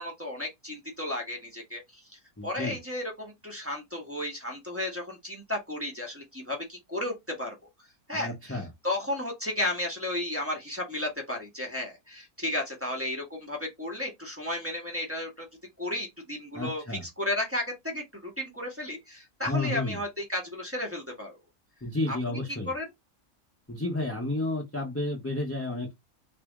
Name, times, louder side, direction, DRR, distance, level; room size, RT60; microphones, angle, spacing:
voice 1, 0.0-7.5 8.1-15.5 15.8-21.4 22.1-22.4 22.7-22.9, left 1 dB, 10° right, 1.1 m, -34 dB
voice 2, 2.4-2.8 8.1-8.7 16.5-17.0 19.4-20.0 21.8-22.7 23.7-25.9, left 2 dB, 15° left, 0.7 m, -31 dB
3.3 x 2.8 x 3.5 m
omnidirectional pair, 1.5 m